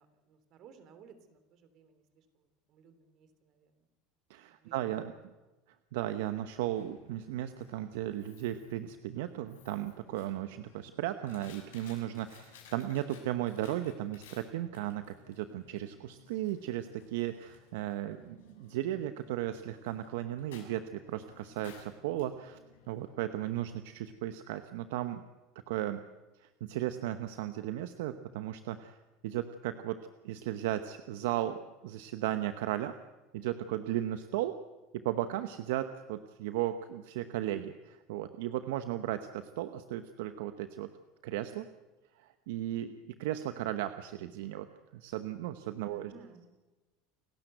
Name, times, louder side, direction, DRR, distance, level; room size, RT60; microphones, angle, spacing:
voice 1, 0.0-3.9 4.5-5.2 45.9-46.5, right 6 dB, 55° right, 10 dB, 3.2 m, -58 dB
voice 2, 4.3-5.1 5.9-22.6 22.9-25.2 25.7-26.0 26.4-29.0 29.2-32.9 33.3-34.6 34.9-40.9 41.2-41.7 42.2-44.7 44.9-46.1, right 13 dB, 80° right, 10 dB, 0.9 m, -35 dB
Coin (dropping), 6.3-24.1, left 6 dB, 85° left, 7.1 m, -58 dB
28.5 x 12.5 x 7.9 m, 1.2 s
hypercardioid pair, 95°, 0 cm